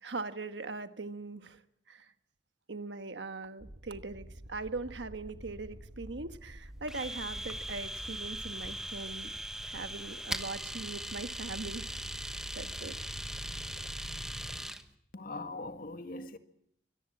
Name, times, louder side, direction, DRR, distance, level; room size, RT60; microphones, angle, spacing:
voice 1, 0.0-1.6 1.9-2.1 2.7-9.3 9.6-11.9 12.2-13.0, right 3 dB, 85° right, 1.4 m, -41 dB
sound 1, 3.6-8.9, right 1 dB, 40° right, 1.3 m, -49 dB
Domestic sounds home sounds, 6.9-14.8, right 1 dB, 5° right, 1.1 m, -40 dB
sound 2, 7.0-14.6, equal, 30° left, 4.9 m, -47 dB
voice 2, 15.1-16.4, left 2 dB, 55° left, 1.9 m, -41 dB
24.0 x 18.5 x 8.6 m
head